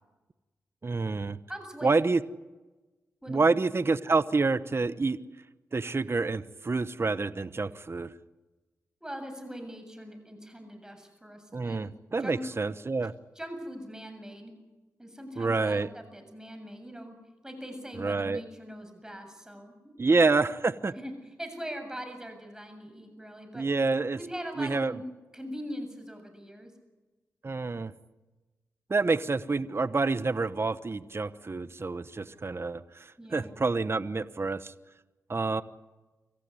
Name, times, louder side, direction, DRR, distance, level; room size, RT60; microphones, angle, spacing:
voice 1, 0.8-1.4 1.8-2.2 3.3-5.2 5.7-8.1 11.5-13.1 15.4-15.9 18.0-18.4 20.0-20.9 23.5-24.2 24.6-25.0 27.4-27.9 28.9-34.7 35.3-35.6, right 3 dB, 40° right, 15 dB, 1.0 m, -28 dB
voice 2, 1.5-1.9 3.2-3.5 9.0-11.9 12.2-12.4 13.3-14.6 15.0-17.1 17.4-20.2 21.0-21.1 21.4-23.7 24.1-25.0 25.3-26.7 33.2-33.5, equal, 10° right, 6 dB, 7.6 m, -42 dB
25.5 x 15.0 x 9.8 m, 1.2 s
cardioid pair, 45°, 6 cm